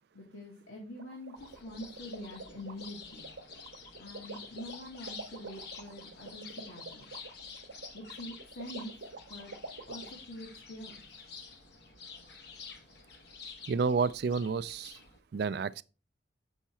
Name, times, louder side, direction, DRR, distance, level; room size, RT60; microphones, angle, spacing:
voice 1, 0.1-3.3 4.0-7.1 7.9-8.9 9.3-9.5 9.9-11.0, left 1 dB, 80° left, 1.8 m, -45 dB
sound 1, 1.0-10.1, right 4 dB, 85° right, 0.8 m, -46 dB
sound 2, 1.4-15.2, left 5 dB, 55° left, 1.2 m, -49 dB
voice 2, 13.7-15.0 15.3-15.8, right 5 dB, 55° right, 0.3 m, -30 dB
7.1 x 4.7 x 4.3 m
head